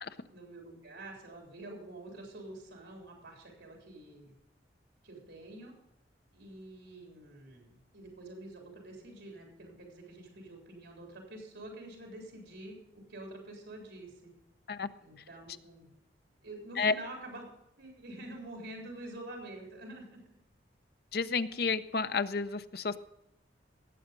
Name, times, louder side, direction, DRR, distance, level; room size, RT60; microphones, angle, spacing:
voice 1, 0.3-4.3 5.0-5.7 6.3-14.3 15.0-15.9 16.4-17.4 17.8-20.2, right 1 dB, 80° right, 1 dB, 3.7 m, -47 dB
voice 2, 21.1-23.0, left 4 dB, 55° left, 12 dB, 0.7 m, -31 dB
17.5 x 7.8 x 5.2 m, 0.86 s
head